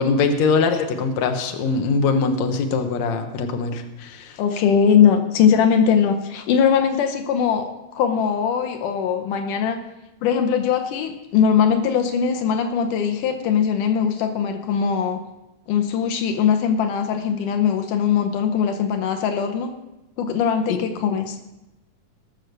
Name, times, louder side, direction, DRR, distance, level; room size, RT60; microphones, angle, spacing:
voice 1, 0.0-4.4 20.7-20.8, left 4 dB, 65° left, 6 dB, 2.4 m, -22 dB
voice 2, 4.4-9.8 10.2-15.2 15.7-19.7 20.2-21.4, left 7 dB, 85° left, 7 dB, 2.5 m, -20 dB
19.5 x 6.5 x 6.7 m, 0.94 s
omnidirectional pair, 3.6 m